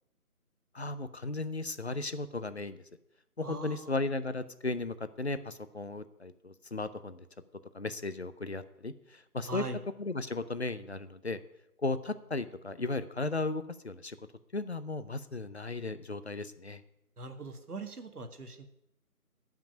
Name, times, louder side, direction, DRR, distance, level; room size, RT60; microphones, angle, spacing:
voice 1, 0.7-2.8 3.4-7.2 7.7-9.6 10.0-11.4 11.8-14.2 14.5-16.8, left 3 dB, 45° left, 13 dB, 0.7 m, -35 dB
voice 2, 3.4-4.0 9.4-9.8 17.2-18.7, right 2 dB, 80° right, 7 dB, 1.9 m, -41 dB
12.0 x 5.9 x 9.2 m, 0.81 s
figure-of-eight pair, 170°, 45 cm